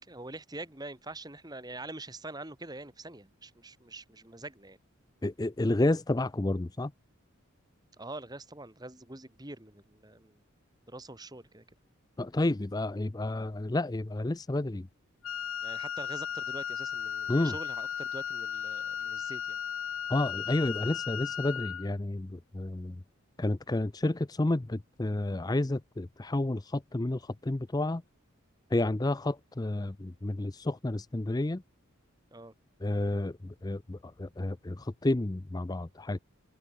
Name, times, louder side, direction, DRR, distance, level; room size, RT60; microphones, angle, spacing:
voice 1, 0.0-4.8 8.0-10.4 10.9-11.6 15.6-19.6 32.3-32.5, right 2 dB, 20° right, 2.3 m, -44 dB
voice 2, 5.2-6.9 12.2-14.9 17.3-17.6 20.1-23.0 23.4-28.0 28.7-31.6 32.8-36.2, left 2 dB, 20° left, 0.5 m, -30 dB
Wind instrument woodwind instrument, 15.2-21.9, left 8 dB, 70° left, 0.6 m, -35 dB
head